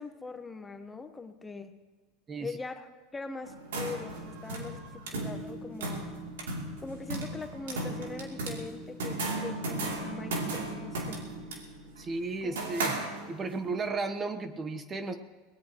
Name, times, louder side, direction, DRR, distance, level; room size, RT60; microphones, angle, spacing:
voice 1, 0.0-1.7 2.4-6.1 6.8-11.2 12.4-12.6, left 4 dB, 15° left, 7 dB, 1.2 m, -42 dB
sound 1, 3.4-13.6, right 2 dB, 90° right, 2.9 m, -36 dB
voice 2, 12.0-13.0 13.3-15.2, right 3 dB, 25° right, 9 dB, 1.1 m, -34 dB
22.5 x 18.5 x 3.1 m, 1.4 s
supercardioid pair, 110°, 0 cm